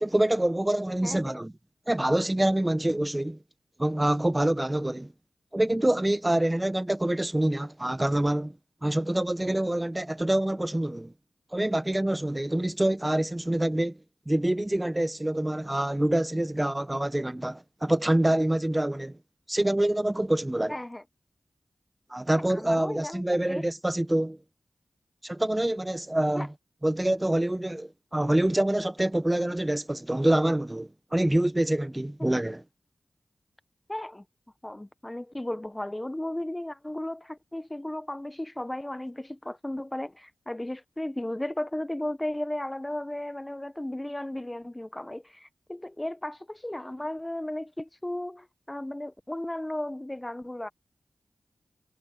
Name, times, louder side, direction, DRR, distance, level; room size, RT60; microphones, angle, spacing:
voice 1, 0.0-1.5 1.9-3.4 3.8-5.1 5.5-8.6 8.8-11.1 11.5-14.0 14.3-19.2 19.5-20.7 22.1-24.4 25.2-26.5 26.8-32.6, right 1 dB, 15° right, 1.1 m, -26 dB
voice 2, 1.0-1.4 20.7-21.0 22.3-23.2 23.5-23.6 26.3-26.5 33.9-34.2 34.6-50.7, left 1 dB, 15° left, 0.9 m, -35 dB
cardioid pair, 65°, 0 cm